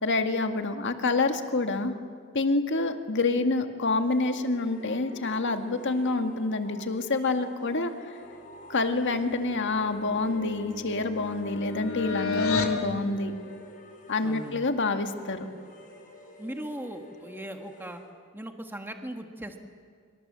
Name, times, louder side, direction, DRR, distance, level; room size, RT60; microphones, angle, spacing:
voice 1, 0.0-1.9 2.3-8.1 8.7-13.3 14.1-15.5, left 3 dB, 60° left, 7 dB, 1.9 m, -27 dB
sound 1, 3.9-18.1, equal, 40° left, 6.5 m, -48 dB
sound 2, 9.6-12.8, left 5 dB, 75° left, 2.7 m, -33 dB
voice 2, 14.2-14.6 16.4-18.0 18.3-19.6, right 1 dB, 10° right, 5 dB, 1.5 m, -38 dB
26.0 x 24.5 x 7.6 m, 2.2 s
head